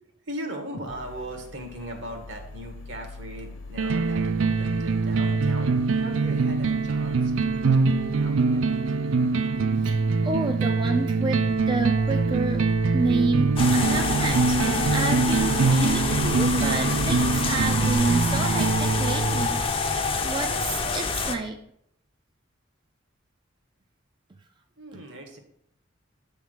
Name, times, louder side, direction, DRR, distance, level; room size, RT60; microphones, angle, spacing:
voice 1, 0.0-8.7 24.8-25.4, equal, 70° right, 3 dB, 1.4 m, -39 dB
sound 1, 0.9-18.8, left 2 dB, 80° left, 1.0 m, -44 dB
sound 2, 3.8-19.7, right 4 dB, 90° right, 0.4 m, -23 dB
voice 2, 10.2-12.6 12.9-21.6, right 3 dB, 25° right, 4 dB, 0.4 m, -29 dB
sound 3, 13.6-21.3, left 4 dB, 30° left, 0.6 m, -27 dB
7.2 x 3.6 x 6.1 m, 0.73 s
head